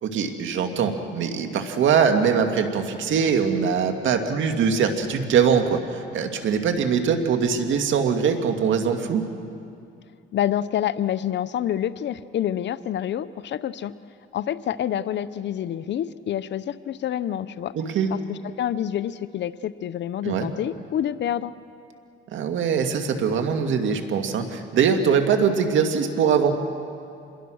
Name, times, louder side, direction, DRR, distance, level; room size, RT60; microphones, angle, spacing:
voice 1, 0.0-9.3 17.7-18.1 20.2-20.5 22.3-26.5, right 6 dB, 75° right, 5 dB, 2.1 m, -22 dB
voice 2, 10.3-13.9 14.3-17.7 18.1-21.5, left 10 dB, 65° left, 15 dB, 0.7 m, -27 dB
26.5 x 22.0 x 6.4 m, 2.5 s
cardioid pair, 90°, 20 cm